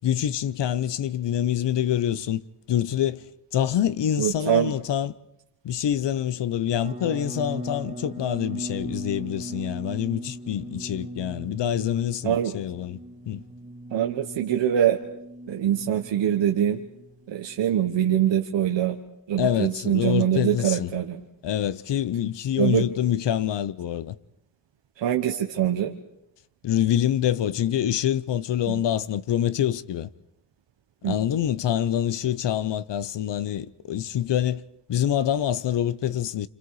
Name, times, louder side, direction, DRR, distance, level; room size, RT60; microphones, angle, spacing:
voice 1, 0.0-2.4 2.7-3.3 3.5-5.1 5.6-13.0 13.3-13.4 19.4-20.9 21.4-24.1 26.6-30.1 31.0-34.6 34.9-36.5, left 10 dB, 75° left, 0.9 m, -26 dB
voice 2, 4.2-4.7 12.2-12.5 13.9-15.0 15.5-16.8 17.3-19.0 19.3-21.2 22.6-22.9 25.0-25.9 28.7-28.8 31.0-31.2, right 10 dB, 85° right, 1.3 m, -23 dB
sound 1, 6.8-17.8, right 1 dB, 20° right, 2.2 m, -39 dB
29.0 x 26.5 x 4.9 m
wide cardioid pair, 160°, 43 cm